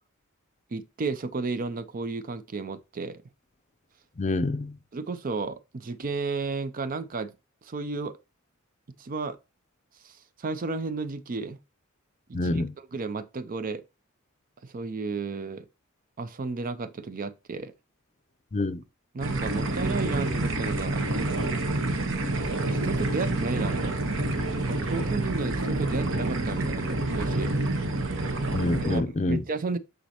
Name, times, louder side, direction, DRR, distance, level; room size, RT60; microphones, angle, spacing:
voice 1, 0.7-3.2 4.9-7.3 7.6-8.2 9.0-9.4 10.0-11.6 12.3-12.6 12.9-13.8 14.6-15.7 16.2-17.7 19.1-21.5 22.4-24.0 24.7-27.5 28.8-29.8, right 4 dB, 40° right, 0.5 m, -33 dB
voice 2, 4.2-4.8 12.3-12.7 18.5-18.8 28.5-29.4, left 2 dB, 30° left, 0.5 m, -27 dB
sound 1, 19.2-29.0, right 2 dB, 60° right, 1.1 m, -28 dB
9.3 x 4.0 x 2.9 m
head